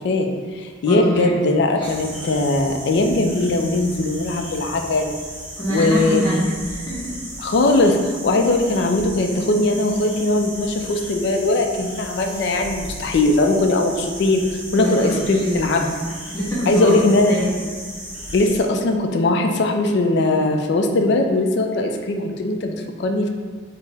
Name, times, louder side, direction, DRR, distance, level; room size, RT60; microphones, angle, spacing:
voice 1, 0.0-5.1 5.7-6.2 7.4-15.8 16.7-17.3 18.3-23.3, left 2 dB, 55° left, 3 dB, 0.3 m, -20 dB
voice 2, 0.8-1.3 1.8-1.9 5.6-7.1 14.7-17.5, equal, 15° left, -10 dB, 1.0 m, -24 dB
sound 1, 1.8-18.6, right 1 dB, 5° right, 0.6 m, -35 dB
4.3 x 2.0 x 3.3 m, 1.5 s
head